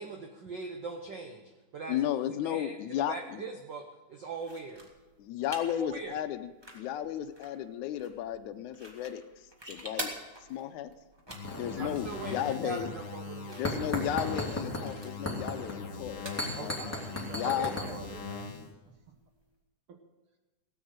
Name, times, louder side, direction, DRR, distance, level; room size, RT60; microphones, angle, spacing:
voice 1, 0.0-2.1 2.4-2.8 3.1-4.9 5.7-6.1 11.8-14.3 16.5-16.7 17.4-18.2, right 4 dB, 80° right, 4 dB, 1.0 m, -41 dB
voice 2, 1.9-3.5 5.2-9.2 9.7-10.1 10.5-10.9 11.6-12.9 13.6-16.8 17.3-17.7, left 11 dB, 80° left, 11 dB, 2.1 m, -34 dB
sound 1, 4.4-19.5, equal, 15° right, 1.1 m, -48 dB
sound 2, 11.3-18.7, left 4 dB, 50° left, 0.9 m, -41 dB
sound 3, 11.4-12.6 12.8-13.0 13.6-14.8 15.3-15.7 16.4-17.9, left 1 dB, 5° left, 2.4 m, -36 dB
voice 3, 11.8-12.7 16.8-18.5 18.9-19.2 19.9-20.0, right 4 dB, 55° right, 4 dB, 1.7 m, -49 dB
17.0 x 8.8 x 6.5 m, 1.2 s
omnidirectional pair, 3.5 m